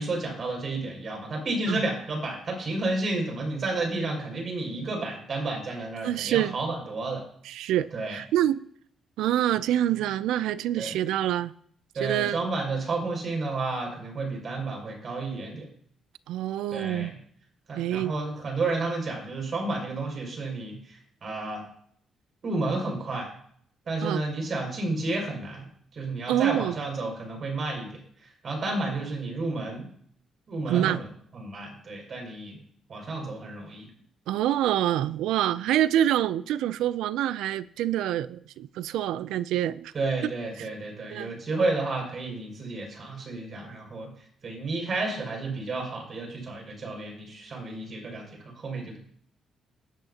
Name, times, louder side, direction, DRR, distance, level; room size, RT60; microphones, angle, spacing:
voice 1, 0.0-7.2 7.9-8.2 10.8-11.0 11.9-15.7 16.7-17.1 17.7-21.6 22.4-23.3 23.9-25.7 25.9-28.0 28.4-29.8 30.5-31.1 31.3-32.6 32.9-33.9 39.9-44.1 44.4-49.0, right 2 dB, 50° right, 5.9 m, -31 dB
voice 2, 6.0-6.6 7.4-8.6 9.2-11.5 12.0-12.5 16.3-17.1 17.7-18.1 24.0-24.2 26.3-26.8 30.7-31.0 34.3-39.9 40.6-40.7 41.1-41.3, right 12 dB, 90° right, 0.4 m, -26 dB
18.5 x 11.0 x 2.9 m
cardioid pair, 90°, 0 cm